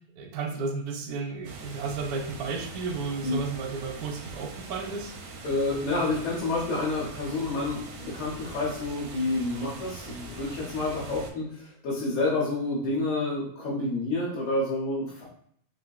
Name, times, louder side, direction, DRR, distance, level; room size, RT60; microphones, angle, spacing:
voice 1, 0.2-5.1, right 4 dB, 85° right, 4 dB, 1.1 m, -33 dB
sound 1, 1.4-11.3, right 3 dB, 65° right, 0.7 m, -42 dB
voice 2, 5.4-15.2, left 2 dB, 65° left, -5 dB, 1.2 m, -29 dB
3.8 x 2.6 x 2.3 m, 0.65 s
omnidirectional pair, 1.6 m